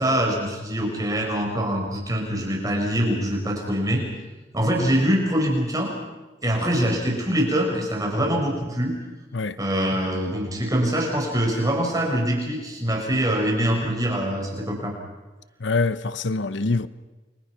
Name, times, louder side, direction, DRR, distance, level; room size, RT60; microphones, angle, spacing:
voice 1, 0.0-4.0 4.5-5.9 6.4-8.9 9.6-14.9, equal, 20° right, 4.8 m, -24 dB
voice 2, 15.6-16.9, left 3 dB, 90° left, 0.9 m, -24 dB
29.5 x 23.5 x 5.9 m
head